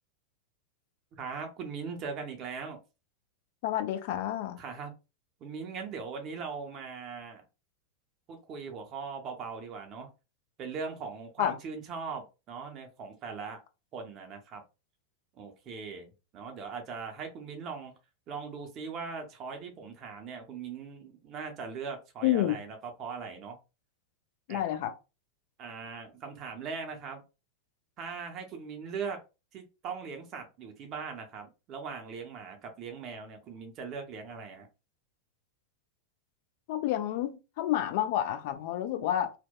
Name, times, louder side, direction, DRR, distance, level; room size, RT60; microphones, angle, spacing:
voice 1, 1.1-2.8 4.6-4.9 5.4-7.4 8.3-10.1 10.6-13.6 13.9-14.6 15.4-17.9 18.3-23.6 24.5-24.6 25.6-27.2 28.0-29.2 29.5-34.7, right 5 dB, 35° right, 0.6 m, -40 dB
voice 2, 3.6-4.6 11.4-11.6 22.2-22.6 24.5-24.9 36.7-39.3, left 12 dB, 50° left, 0.4 m, -29 dB
2.7 x 2.1 x 2.2 m
figure-of-eight pair, 90°, 0 cm